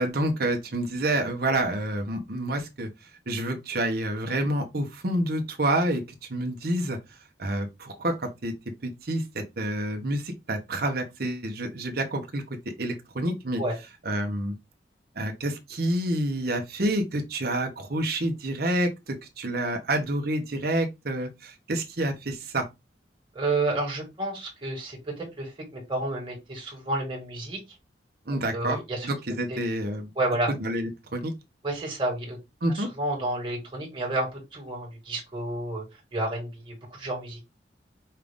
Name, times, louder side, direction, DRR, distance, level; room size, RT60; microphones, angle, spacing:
voice 1, 0.0-2.9 3.3-6.0 6.3-7.0 7.4-8.5 8.8-12.4 12.8-13.6 14.0-14.6 15.2-22.6 28.3-28.8 29.0-30.1 30.5-31.3 32.6-32.9, right 1 dB, 60° right, 0.9 m, -28 dB
voice 2, 23.4-27.6 28.5-29.1 29.5-29.6 30.2-30.5 31.6-32.4 32.7-37.4, right 2 dB, 30° right, 1.9 m, -30 dB
5.5 x 2.5 x 3.5 m
head